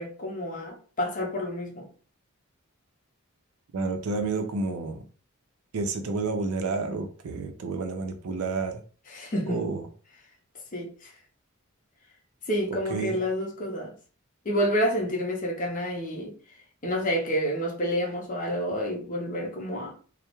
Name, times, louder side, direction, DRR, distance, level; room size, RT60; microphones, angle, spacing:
voice 1, 0.0-1.8 9.1-9.8 10.7-11.1 12.5-13.9 14.4-16.4 16.8-19.9, equal, 40° left, 0.6 m, -29 dB
voice 2, 3.7-5.1 5.7-8.8 9.5-9.8 12.9-13.2, right 3 dB, 80° right, 0.4 m, -30 dB
2.2 x 2.0 x 2.9 m
head